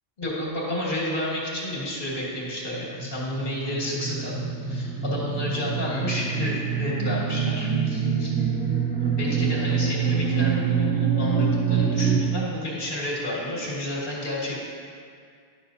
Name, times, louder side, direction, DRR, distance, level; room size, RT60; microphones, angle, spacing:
voice 1, 0.2-8.3 9.0-14.6, left 1 dB, 60° left, -5 dB, 1.9 m, -31 dB
sound 1, 2.4-12.2, right 6 dB, 10° left, 1.3 m, -25 dB
11.0 x 6.1 x 2.7 m, 2.2 s
omnidirectional pair, 1.0 m